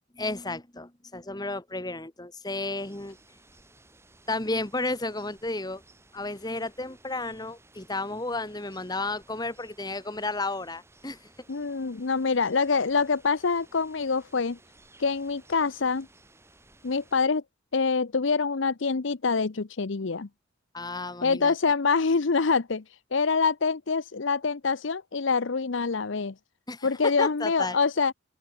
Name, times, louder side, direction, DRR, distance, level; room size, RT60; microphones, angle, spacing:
voice 1, 0.1-3.2 4.3-5.8 6.1-11.2 20.7-21.5 26.7-27.8, left 2 dB, 20° left, 1.6 m, -32 dB
sound 1, 2.8-17.2, right 2 dB, 10° right, 5.7 m, -58 dB
voice 2, 11.5-14.6 15.0-16.1 16.8-17.4 17.7-20.3 21.2-22.8 23.1-26.3 26.8-28.1, left 4 dB, 60° left, 0.7 m, -25 dB
open air
head